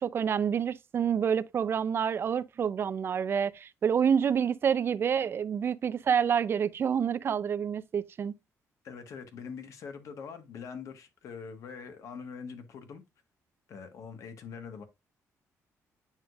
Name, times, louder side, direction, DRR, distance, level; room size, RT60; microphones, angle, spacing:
voice 1, 0.0-8.3, right 7 dB, 45° right, 0.5 m, -28 dB
voice 2, 8.8-13.0 13.7-14.8, left 6 dB, 65° left, 1.4 m, -43 dB
8.9 x 5.0 x 2.4 m
cardioid pair, 130°, 6 cm